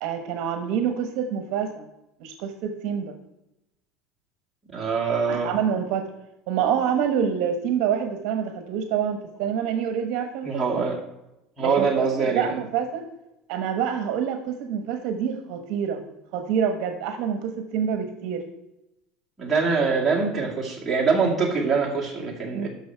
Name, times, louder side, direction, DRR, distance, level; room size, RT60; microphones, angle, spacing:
voice 1, 0.0-1.9 2.2-3.1 5.2-6.0 6.5-10.8 11.6-13.0 13.5-16.0 16.3-18.4 22.5-22.7, right 8 dB, 55° right, 7 dB, 1.0 m, -27 dB
voice 2, 4.7-5.6 10.4-10.9 11.6-12.5 19.4-22.7, right 5 dB, 5° right, -5 dB, 2.1 m, -24 dB
11.5 x 6.3 x 4.5 m, 0.91 s
cardioid pair, 165°, 0 cm